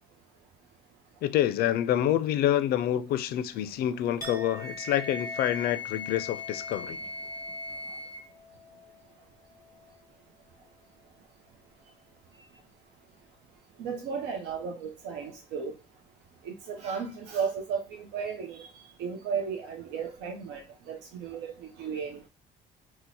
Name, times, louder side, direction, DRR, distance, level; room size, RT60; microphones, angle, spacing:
voice 1, 1.2-7.0, left 11 dB, 65° left, 0.4 m, -27 dB
Chink clink, 4.2-10.1 10.4-10.8, left 2 dB, 20° right, 1.2 m, -46 dB
Wind instrument woodwind instrument, 4.6-8.3, left 3 dB, 60° right, 1.3 m, -38 dB
voice 2, 13.8-15.7 16.4-18.7 19.0-22.2, right 6 dB, 90° right, 0.5 m, -34 dB
2.8 x 2.1 x 3.9 m
cardioid pair, 110°, 17 cm